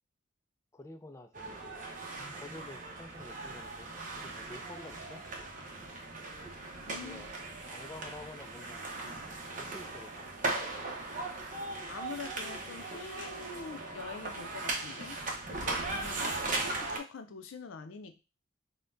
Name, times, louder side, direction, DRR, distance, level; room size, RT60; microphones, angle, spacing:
voice 1, 0.7-1.8 2.1-5.2 6.9-7.3 7.6-9.2 9.5-11.2, left 2 dB, 15° left, 6 dB, 0.3 m, -50 dB
sound 1, 1.3-17.0, right 2 dB, 40° right, 0.7 m, -38 dB
voice 2, 6.9-7.3 11.9-15.2 15.5-18.3, left 4 dB, 85° left, 8 dB, 0.5 m, -45 dB
5.6 x 2.1 x 2.6 m, 0.29 s
head